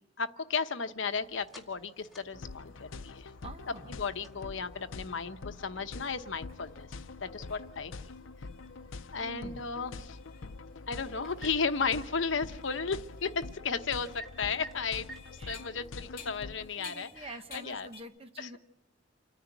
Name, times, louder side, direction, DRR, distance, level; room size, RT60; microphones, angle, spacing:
voice 1, 0.0-3.3 3.9-7.9 9.1-10.2 10.9-15.1 15.5-17.9 18.4-18.5, left 5 dB, 70° left, 9 dB, 1.0 m, -34 dB
sound 1, 0.7-17.1, right 2 dB, ahead, 2.3 m, -57 dB
sound 2, 1.0-18.0, left 6 dB, 45° left, 2.5 m, -57 dB
sound 3, 2.3-16.7, left 3 dB, 85° left, 0.6 m, -45 dB
voice 2, 3.4-3.9 9.2-9.7 15.4-15.6 16.8-18.6, right 2 dB, 30° right, 8 dB, 1.1 m, -46 dB
28.5 x 10.0 x 9.3 m, 0.92 s
head